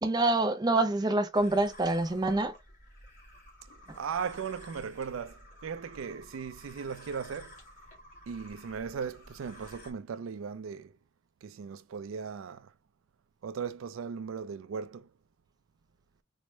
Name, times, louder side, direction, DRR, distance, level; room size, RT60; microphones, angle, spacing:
voice 1, 0.0-2.5, right 2 dB, 20° right, 0.4 m, -26 dB
sound 1, 1.3-9.9, equal, 40° left, 1.9 m, -52 dB
voice 2, 3.9-7.6 8.3-10.9 11.4-12.7 13.4-15.1, right 6 dB, 85° right, 0.4 m, -37 dB
4.3 x 2.1 x 3.0 m
head